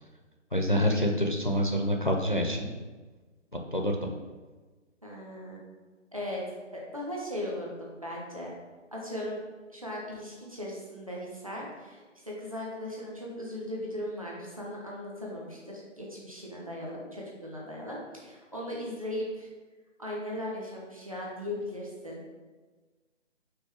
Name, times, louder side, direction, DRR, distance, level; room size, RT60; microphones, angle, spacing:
voice 1, 0.5-2.7 3.7-4.0, equal, 40° left, 2 dB, 0.5 m, -26 dB
voice 2, 5.0-5.6 6.1-6.4 6.7-8.5 8.9-9.4 9.7-19.5 20.0-22.2, left 1 dB, 25° right, -4 dB, 0.9 m, -38 dB
5.3 x 4.1 x 4.5 m, 1.3 s
figure-of-eight pair, 180°, 38 cm